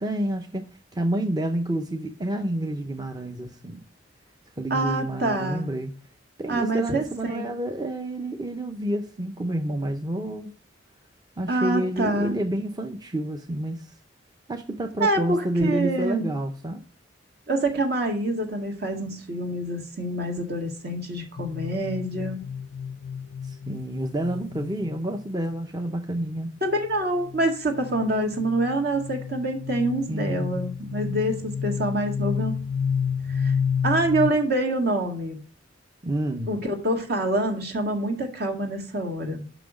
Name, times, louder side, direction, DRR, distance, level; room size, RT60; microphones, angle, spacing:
voice 1, 0.0-0.6 0.9-3.8 4.6-5.9 6.4-10.5 11.4-13.9 14.5-16.8 23.4-26.5 30.1-30.6 36.0-36.6, right 1 dB, 20° right, 0.6 m, -29 dB
voice 2, 4.7-5.7 6.5-7.5 11.5-12.3 15.0-16.3 17.5-22.5 26.6-32.5 33.3-33.5 33.8-35.4 36.5-39.4, right 1 dB, 55° right, 1.8 m, -26 dB
sound 1, 21.4-25.2 26.7-34.3, left 6 dB, 80° left, 0.4 m, -31 dB
6.0 x 5.9 x 4.8 m
head